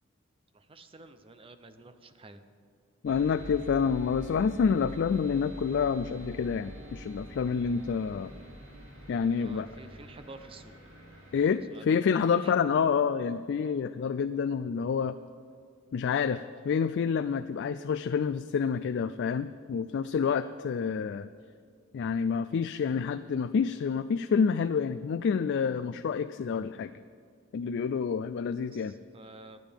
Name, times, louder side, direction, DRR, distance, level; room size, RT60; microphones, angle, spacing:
voice 1, 0.5-2.4 9.4-10.7 11.7-12.7 28.7-29.6, right 2 dB, 25° right, 9 dB, 0.6 m, -50 dB
voice 2, 3.0-8.3 9.1-9.7 11.3-15.1 15.9-21.3 21.9-26.9 27.5-28.9, left 6 dB, 60° left, 11 dB, 0.3 m, -28 dB
sound 1, 3.1-11.5, equal, 85° right, 2.8 m, -45 dB
26.0 x 9.2 x 3.5 m, 2.2 s
head